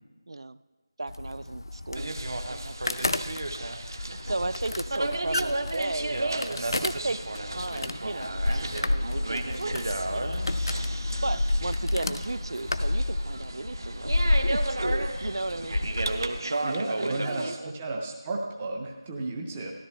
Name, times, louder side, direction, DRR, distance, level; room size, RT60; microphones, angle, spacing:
voice 1, 0.3-0.6 1.0-2.2 2.5-3.2 4.2-9.8 10.1-10.4 11.0-15.8 16.4-16.7 17.0-18.0, right 2 dB, 70° right, 17 dB, 0.3 m, -35 dB
sound 1, 1.1-16.4, left 2 dB, 60° left, 0.5 m, -31 dB
sound 2, 1.9-17.6, right 2 dB, 50° right, 0.7 m, -34 dB
voice 2, 16.6-19.7, right 2 dB, 10° right, 1 dB, 0.5 m, -33 dB
13.5 x 12.5 x 3.2 m, 1.4 s
figure-of-eight pair, 175°, 3 cm